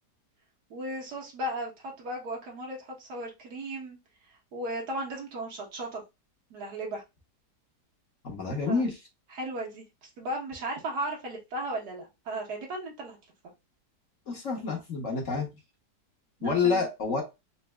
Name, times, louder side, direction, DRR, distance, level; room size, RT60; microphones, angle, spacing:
voice 1, 0.7-4.0 4.5-6.0 6.5-7.0 8.7-8.8 9.3-13.2 16.4-16.9, right 1 dB, 70° right, 1.7 m, -36 dB
voice 2, 8.2-9.0 14.3-15.5 16.4-17.2, left 4 dB, 55° left, 1.3 m, -28 dB
4.1 x 2.6 x 2.3 m
omnidirectional pair, 1.8 m